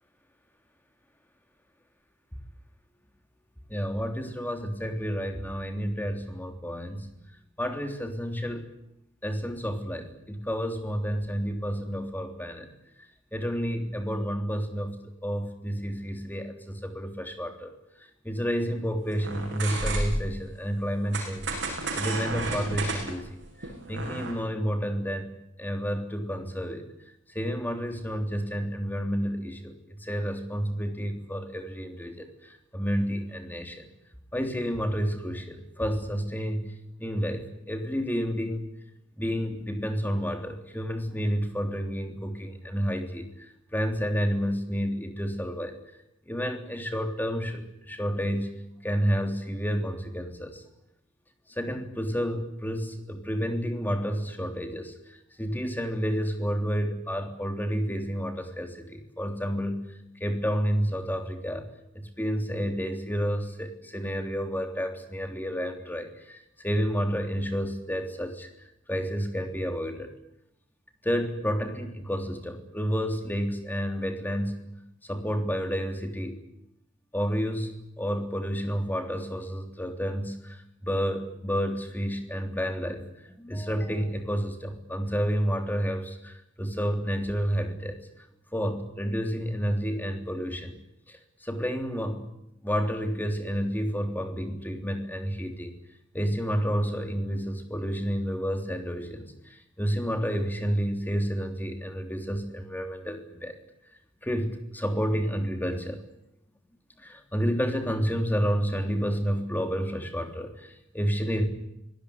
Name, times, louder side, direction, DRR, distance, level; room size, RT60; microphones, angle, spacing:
voice 1, 3.7-7.1 7.6-8.7 9.2-12.7 13.3-15.0 15.2-17.7 18.2-21.4 21.9-25.3 25.6-26.9 27.3-33.9 34.3-38.7 39.2-45.8 46.3-48.5 48.8-50.6 51.5-59.9 60.2-61.7 61.9-68.5 68.9-70.1 71.0-74.6 75.1-76.4 77.1-88.0 88.5-90.8 91.1-92.2 92.6-95.7 96.1-103.5 104.2-106.0 107.0-111.4, equal, 10° left, 6 dB, 3.4 m, -30 dB
sound 1, 19.2-20.4 21.1-24.3, right 2 dB, 60° right, 7.7 m, -32 dB
24.0 x 18.5 x 9.8 m, 0.81 s
head